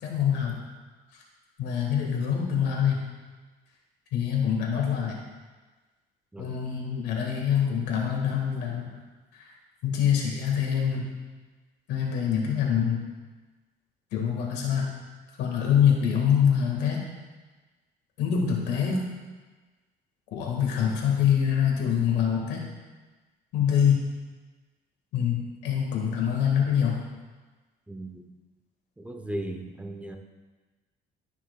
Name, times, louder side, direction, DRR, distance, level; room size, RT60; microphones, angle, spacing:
voice 1, 0.0-0.6 1.6-3.0 4.1-5.2 6.4-8.9 9.4-9.5 9.8-11.0 11.9-13.0 14.1-14.9 15.4-17.1 18.2-19.0 20.3-22.6 23.5-24.0 25.1-27.0, left 8 dB, 85° left, 0 dB, 1.7 m, -25 dB
voice 2, 27.9-28.3 29.0-30.2, right 1 dB, 10° right, 4 dB, 0.7 m, -37 dB
12.5 x 5.9 x 2.3 m, 1.3 s
cardioid pair, 110°, 17 cm